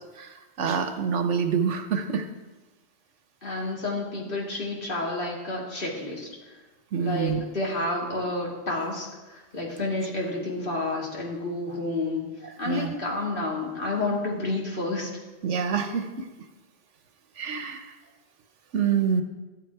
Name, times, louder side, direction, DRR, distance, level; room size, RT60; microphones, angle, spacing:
voice 1, 0.2-2.3 6.9-7.4 12.4-12.9 15.4-16.3 17.4-17.9 18.7-19.2, right 7 dB, 80° right, 7 dB, 1.2 m, -27 dB
voice 2, 3.4-6.3 7.0-12.2 12.6-15.1, left 2 dB, 45° left, -3 dB, 2.8 m, -30 dB
12.5 x 9.4 x 4.7 m, 1.2 s
omnidirectional pair, 1.2 m